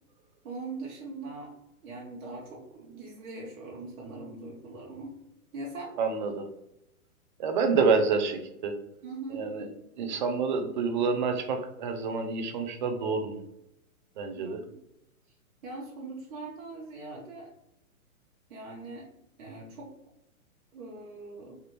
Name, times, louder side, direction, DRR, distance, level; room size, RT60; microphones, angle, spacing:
voice 1, 0.4-1.5 1.8-5.2 5.5-5.9 9.0-9.5 14.4-14.8 15.6-17.5 18.5-19.1 19.4-19.9 20.7-21.6, right 3 dB, 65° right, -2 dB, 1.0 m, -41 dB
voice 2, 6.0-6.4 7.4-8.7 9.4-9.7 10.0-13.4 14.2-14.6, right 5 dB, 35° right, 6 dB, 0.4 m, -28 dB
3.4 x 2.4 x 2.9 m, 0.83 s
hypercardioid pair, 135°, 43 cm